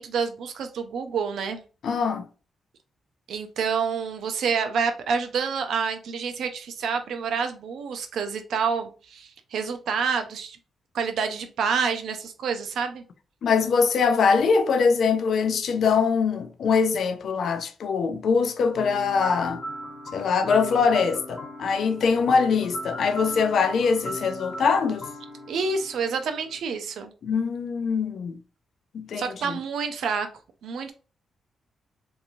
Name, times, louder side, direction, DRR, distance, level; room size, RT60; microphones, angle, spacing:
voice 1, 0.0-1.6 3.3-10.6 10.9-13.0 25.5-27.1 29.2-30.3 30.6-30.9, right 5 dB, 80° right, 0.5 m, -28 dB
voice 2, 1.8-2.2 13.4-19.6 20.1-25.1 27.2-28.4 28.9-29.6, left 5 dB, 70° left, 0.4 m, -23 dB
sound 1, 18.7-26.6, equal, 30° left, 1.0 m, -38 dB
2.9 x 2.6 x 2.6 m
cardioid pair, 90°, 0 cm